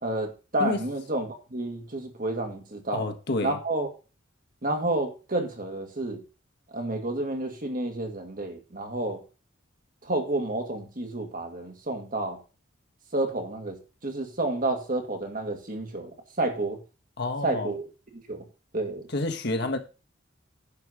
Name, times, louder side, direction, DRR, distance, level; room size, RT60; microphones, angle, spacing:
voice 1, 0.0-3.1 3.4-3.9 4.6-6.2 6.7-9.2 10.0-12.4 13.1-16.8 17.4-17.9 18.3-18.5 18.7-19.1, right 2 dB, 45° right, 2.2 m, -30 dB
voice 2, 2.9-3.6 17.2-17.7 19.1-19.8, left 2 dB, 60° left, 1.4 m, -28 dB
10.5 x 4.8 x 6.2 m
head